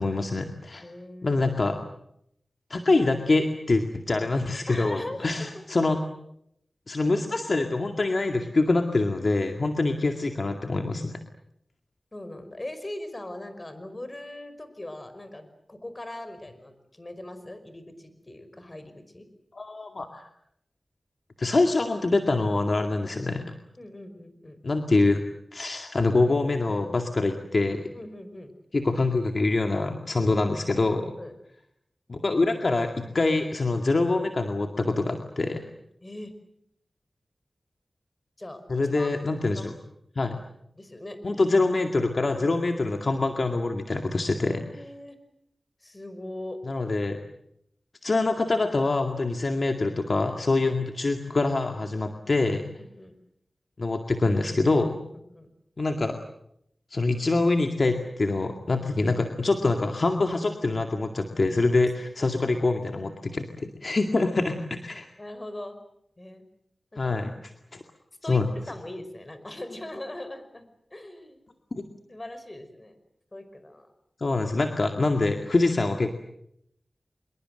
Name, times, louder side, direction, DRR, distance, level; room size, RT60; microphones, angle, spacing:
voice 1, 0.0-0.8 1.2-1.8 2.7-6.0 6.9-11.2 19.6-20.3 21.4-23.5 24.6-25.2 25.5-27.9 28.7-31.2 32.1-35.7 38.7-39.7 40.2-40.4 41.2-44.7 46.7-47.2 48.0-52.7 53.8-55.0 55.8-56.2 56.9-65.1 67.0-67.3 67.7-67.8 68.3-68.5 71.7-71.8 74.2-76.1, left 3 dB, 60° left, 5 dB, 2.2 m, -25 dB
voice 2, 0.8-1.4 4.7-5.3 5.7-5.8 12.1-19.3 23.8-24.6 27.9-28.5 31.2-31.3 36.0-36.3 38.4-38.6 38.9-39.1 39.6-39.7 40.7-41.2 42.2-43.0 44.4-45.2 45.8-46.6 52.8-53.1 55.1-55.5 62.2-62.3 65.2-65.8 66.2-66.5 66.9-67.2 68.2-68.4 68.7-70.7 70.9-71.4 72.1-73.0 73.3-73.9, left 1 dB, 35° left, 10 dB, 5.4 m, -40 dB
26.0 x 23.0 x 7.9 m, 0.75 s
cardioid pair, 50°, 0 cm